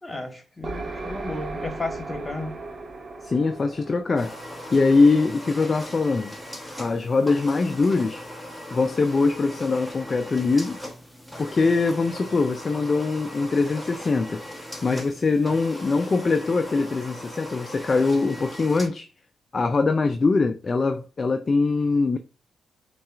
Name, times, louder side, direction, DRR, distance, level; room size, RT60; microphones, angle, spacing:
voice 1, 0.0-2.6, left 2 dB, 25° left, 1.2 m, -33 dB
sound 1, 0.6-6.2, right 2 dB, 45° right, 0.7 m, -37 dB
voice 2, 3.2-4.3 4.7-6.3 6.8-8.2 8.7-10.8 11.4-14.4 14.8-19.1 19.5-22.2, left 3 dB, 40° left, 0.3 m, -22 dB
sound 2, 4.2-18.9, left 1 dB, ahead, 0.8 m, -39 dB
5.3 x 2.3 x 2.3 m
supercardioid pair, 50°, 0 cm